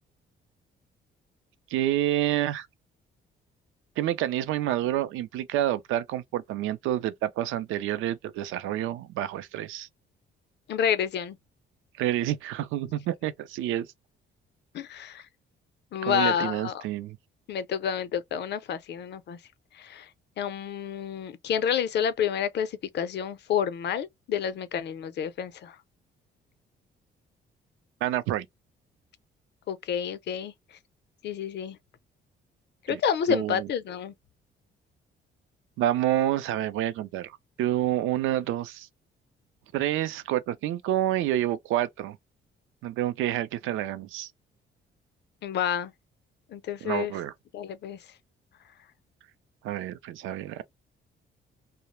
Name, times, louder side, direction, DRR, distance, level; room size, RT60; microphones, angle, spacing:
voice 1, 1.7-2.7 4.0-9.9 12.0-13.9 16.0-17.2 28.0-28.5 32.9-33.0 33.3-33.7 35.8-38.9 39.7-42.2 42.8-44.3 46.8-47.3 49.6-50.6, right 13 dB, 90° right, 0.4 m, -28 dB
voice 2, 10.7-11.4 14.7-15.2 15.9-16.8 17.5-19.4 19.7-20.1 20.4-25.8 29.7-30.5 31.2-31.8 32.9-34.1 45.4-45.9 46.5-47.1 47.5-48.0, left 8 dB, 60° left, 0.5 m, -29 dB
2.3 x 2.0 x 3.0 m
cardioid pair, 90°, 20 cm